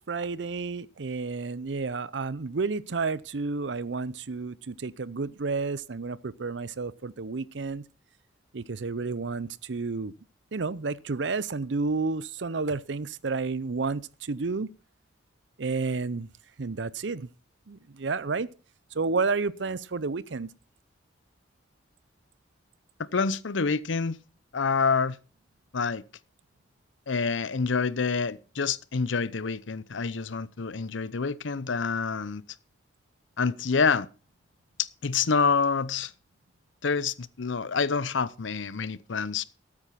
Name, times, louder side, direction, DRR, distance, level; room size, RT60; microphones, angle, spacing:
voice 1, 0.0-7.9 8.5-10.1 10.5-14.7 15.6-16.3 16.6-17.3 17.7-18.5 18.9-20.5, right 4 dB, 65° right, 0.6 m, -31 dB
voice 2, 23.0-24.2 24.5-25.2 25.7-26.0 27.1-32.4 33.4-34.1 34.8-36.1 36.8-39.4, left 5 dB, 80° left, 0.7 m, -27 dB
13.5 x 8.8 x 5.8 m
head